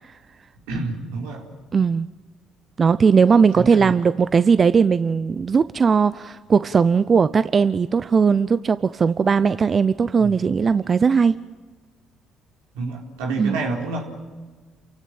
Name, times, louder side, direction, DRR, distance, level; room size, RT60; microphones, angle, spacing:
voice 1, 0.7-1.5 3.5-3.9 10.2-10.3 12.7-14.0, right 3 dB, 85° right, 4.3 m, -28 dB
voice 2, 1.7-2.1 2.8-11.4 13.4-13.6, right 5 dB, 40° right, 0.7 m, -18 dB
28.5 x 16.5 x 9.0 m
hypercardioid pair, 60°, 0 cm